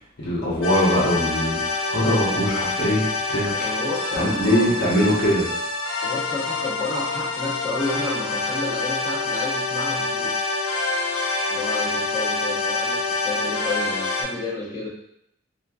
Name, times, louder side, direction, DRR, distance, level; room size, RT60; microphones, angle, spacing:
voice 1, 0.2-1.6 1.9-3.5 4.1-5.5, equal, 60° left, -7 dB, 0.9 m, -21 dB
sound 1, 0.6-14.2, left 3 dB, 90° left, 0.6 m, -26 dB
voice 2, 3.6-4.9 6.0-10.4 11.5-14.9, left 2 dB, 20° left, -9 dB, 1.0 m, -31 dB
3.0 x 2.5 x 2.3 m, 0.76 s
head